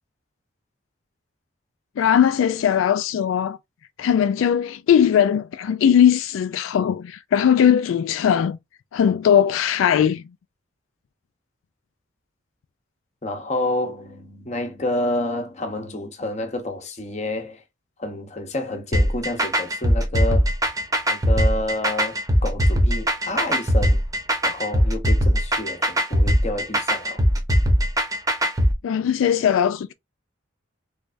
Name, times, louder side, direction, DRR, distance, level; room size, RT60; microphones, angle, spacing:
voice 1, 2.0-3.6 4.0-8.6 8.9-10.2 28.8-29.9, left 8 dB, 80° left, 0.3 m, -19 dB
voice 2, 13.2-17.6 18.0-20.5 21.1-24.0 24.4-27.2, left 1 dB, 35° left, 0.8 m, -29 dB
sound 1, 18.9-28.7, equal, 15° right, 0.8 m, -20 dB
3.3 x 3.2 x 2.5 m
head